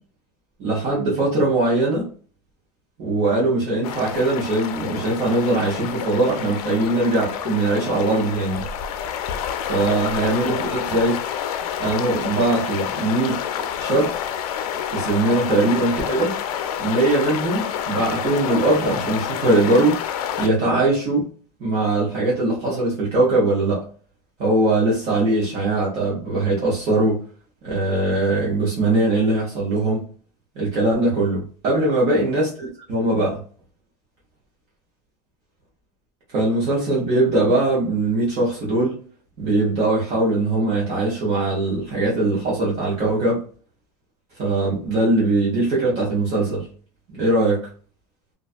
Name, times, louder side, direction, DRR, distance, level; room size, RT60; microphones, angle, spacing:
voice 1, 0.6-2.1 3.0-8.6 9.6-11.2 11.8-13.4 13.8-14.2 14.9-16.3 16.8-20.0 20.4-21.3 21.6-23.8 24.4-27.2 27.6-30.1 30.5-32.5 32.9-33.4 36.3-39.0 39.4-43.4 44.4-46.6 47.1-47.6, right 2 dB, 40° right, 0.9 m, -21 dB
sound 1, 3.8-20.5, left 9 dB, 80° left, 0.4 m, -28 dB
2.4 x 2.3 x 2.4 m
supercardioid pair, 165°, 19 cm